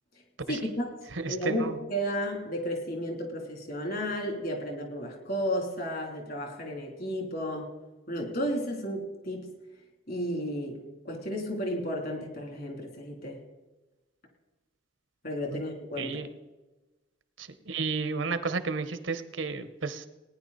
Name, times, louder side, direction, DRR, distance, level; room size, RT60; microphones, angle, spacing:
voice 1, 0.5-0.9 1.2-7.7 8.1-9.5 10.1-13.4 15.2-16.3, equal, 50° left, 2 dB, 3.1 m, -33 dB
voice 2, 1.1-1.8 16.0-16.3 17.4-20.1, right 4 dB, 70° right, 11 dB, 1.0 m, -32 dB
18.5 x 10.0 x 4.1 m, 1.1 s
head